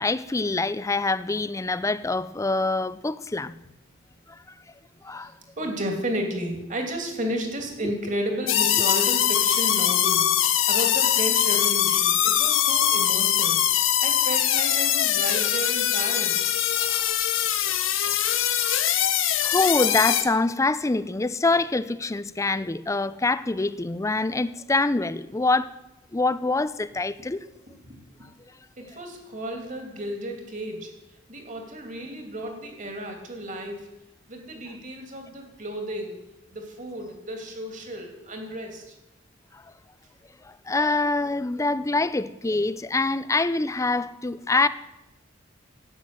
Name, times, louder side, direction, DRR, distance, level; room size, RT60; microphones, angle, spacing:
voice 1, 0.0-3.5 5.0-5.3 16.9-17.1 18.0-18.4 18.6-19.1 19.4-25.7 26.1-27.4 40.7-44.7, left 3 dB, 15° left, 0.4 m, -25 dB
voice 2, 5.2-13.6 14.0-16.5 28.8-30.9 31.3-33.9 34.3-36.2 36.5-38.9, equal, 40° right, 2.8 m, -33 dB
sound 1, 8.5-20.2, left 10 dB, 80° left, 1.1 m, -22 dB
12.5 x 9.4 x 7.7 m
head